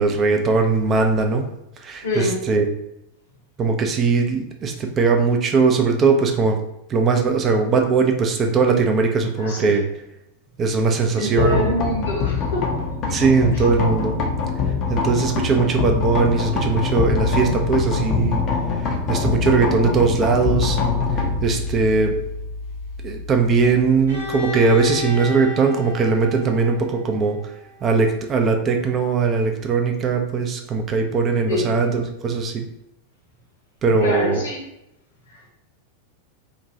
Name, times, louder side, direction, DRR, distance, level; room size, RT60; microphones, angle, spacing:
voice 1, 0.0-1.5 1.8-2.6 3.6-6.6 6.9-9.8 10.6-11.6 13.1-14.2 14.9-18.4 18.7-20.8 21.2-22.2 23.0-27.4 27.8-32.6 33.8-34.4, right 4 dB, 25° right, 4 dB, 0.4 m, -20 dB
voice 2, 2.0-2.4 9.4-9.8 11.2-12.7 31.5-31.7 34.0-34.6 35.3-35.5, left 1 dB, 60° left, -3 dB, 0.9 m, -25 dB
sound 1, 11.4-25.2, left 4 dB, 35° left, 0.5 m, -24 dB
Bowed string instrument, 24.1-27.9, left 3 dB, 75° right, 0.9 m, -32 dB
2.9 x 2.2 x 2.6 m, 0.87 s
figure-of-eight pair, 90°, 0 cm